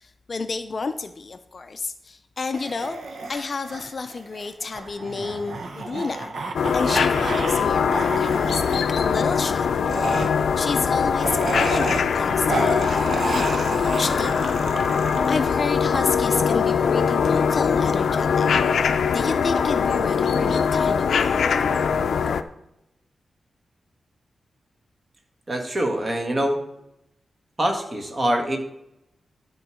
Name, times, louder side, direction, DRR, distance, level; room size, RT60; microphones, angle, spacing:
voice 1, 0.0-3.0 3.3-6.3 6.7-9.8 10.6-14.5 15.3-18.5 19.1-21.5, left 4 dB, 40° left, 9 dB, 0.5 m, -30 dB
sound 1, 2.5-7.6 7.9-8.8 9.9-16.0, right 3 dB, 60° right, 1.2 m, -31 dB
sound 2, 6.5-22.4, left 6 dB, 85° left, 0.5 m, -22 dB
voice 2, 25.5-26.6 27.6-28.6, right 1 dB, 25° right, 3 dB, 1.6 m, -24 dB
12.0 x 4.6 x 6.3 m, 0.84 s
wide cardioid pair, 145°, 0 cm